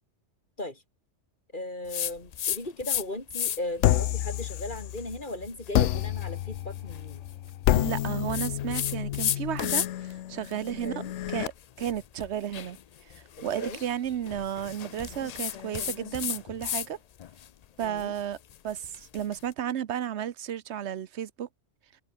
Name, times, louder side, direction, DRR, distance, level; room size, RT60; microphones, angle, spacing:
voice 1, 1.5-7.2 10.8-11.1 13.4-13.8 17.8-18.1, left 1 dB, 45° left, 5.6 m, -37 dB
sound 1, 1.9-3.0 3.3-3.8 4.3-10.1 10.4-16.9 17.2-19.4, left 10 dB, 60° left, 0.4 m, -35 dB
sound 2, 3.8-5.2 5.7-11.5, left 13 dB, 85° left, 0.9 m, -29 dB
voice 2, 7.7-11.0 11.3-11.5 11.8-12.8 13.1-17.0 17.8-18.4 18.6-21.5, right 10 dB, 75° right, 1.1 m, -33 dB
omnidirectional pair, 1.2 m